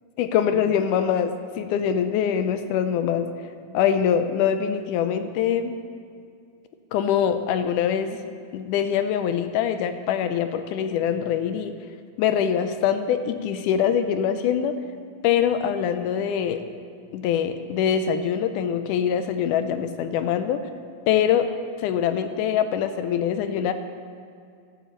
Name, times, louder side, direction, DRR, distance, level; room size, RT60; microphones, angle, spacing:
voice 1, 0.2-3.3 3.7-5.7 6.9-8.2 8.5-11.7 12.2-14.8 15.2-16.6 17.1-20.6 21.1-21.5 21.8-23.7, left 8 dB, 80° left, 9 dB, 2.0 m, -23 dB
12.5 x 7.5 x 6.7 m, 2.3 s
omnidirectional pair, 3.8 m